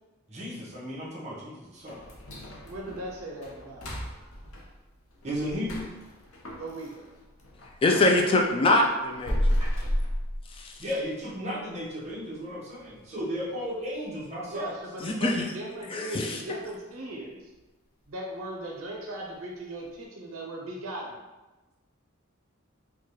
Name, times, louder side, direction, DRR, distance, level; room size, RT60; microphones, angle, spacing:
voice 1, 0.3-2.0 5.2-5.9 9.6-9.9 10.8-14.7, equal, 30° right, -6 dB, 1.0 m, -34 dB
sound 1, 1.9-7.8 8.2-11.0 11.4-11.5 12.0-12.1 12.6-12.9 13.2-13.3 13.9-14.0, equal, 85° left, 0.8 m, -33 dB
voice 2, 2.6-3.9 6.6-7.0 14.5-17.5 18.1-21.2, right 1 dB, 75° right, -2 dB, 0.6 m, -38 dB
voice 3, 7.8-9.4 10.6-10.7 15.0-15.5 15.9-16.4, left 2 dB, 25° left, 1 dB, 0.3 m, -23 dB
4.5 x 2.2 x 3.0 m, 1.1 s
head